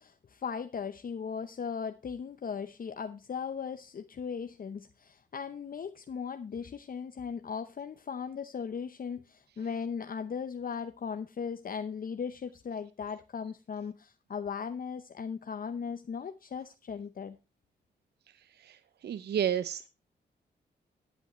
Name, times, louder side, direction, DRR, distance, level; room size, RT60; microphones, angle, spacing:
voice 1, 0.0-17.4, left 6 dB, 50° left, 8 dB, 0.7 m, -38 dB
voice 2, 18.4-19.9, right 9 dB, 65° right, 15 dB, 0.5 m, -32 dB
14.0 x 8.3 x 3.0 m, 0.30 s
supercardioid pair, 50°, 18 cm